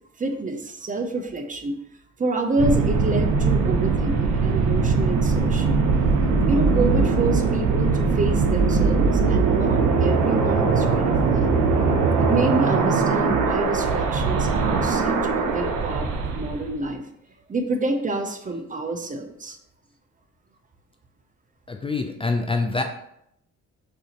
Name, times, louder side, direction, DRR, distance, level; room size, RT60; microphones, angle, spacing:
voice 1, 0.2-1.8 2.2-5.8 6.5-11.5 12.2-17.1 17.5-19.6, right 2 dB, 25° right, 6 dB, 0.6 m, -27 dB
sound 1, 2.6-16.7, right 4 dB, 85° right, 0.8 m, -21 dB
voice 2, 21.7-22.8, left 3 dB, 20° left, 4 dB, 0.4 m, -25 dB
6.7 x 2.7 x 2.9 m, 0.76 s
cardioid pair, 90°, 30 cm